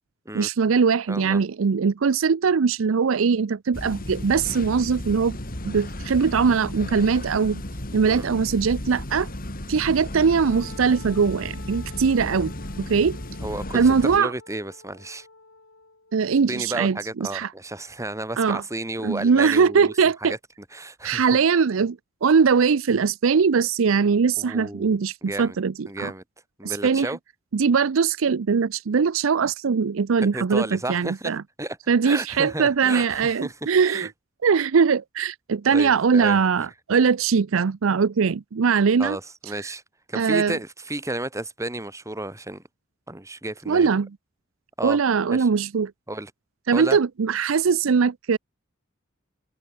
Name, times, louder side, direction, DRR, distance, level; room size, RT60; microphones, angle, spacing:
voice 1, 0.3-5.4 5.6-7.6 7.9-9.3 9.7-12.5 12.8-13.2 13.7-14.3 16.1-17.5 18.4-18.6 19.0-20.3 21.0-26.1 26.6-27.1 27.5-31.4 31.9-34.1 34.4-39.2 40.1-40.6 43.7-44.1 44.8-45.9 46.7-48.4, right 5 dB, 75° right, 0.5 m, -21 dB
voice 2, 1.1-1.4 8.0-8.3 13.4-15.3 16.5-19.9 20.2-20.3 20.7-21.3 24.4-25.6 25.9-26.2 26.6-27.2 30.2-31.3 31.6-31.8 32.0-34.1 35.7-36.4 39.0-39.8 40.1-42.6 43.1-43.9 44.8-45.0 45.3-45.5 46.1-46.3 46.7-47.0, right 1 dB, 15° right, 4.7 m, -32 dB
sound 1, 3.7-14.2, left 1 dB, 45° left, 3.8 m, -34 dB
Wind instrument woodwind instrument, 10.5-16.1, left 3 dB, 80° left, 5.0 m, -48 dB
head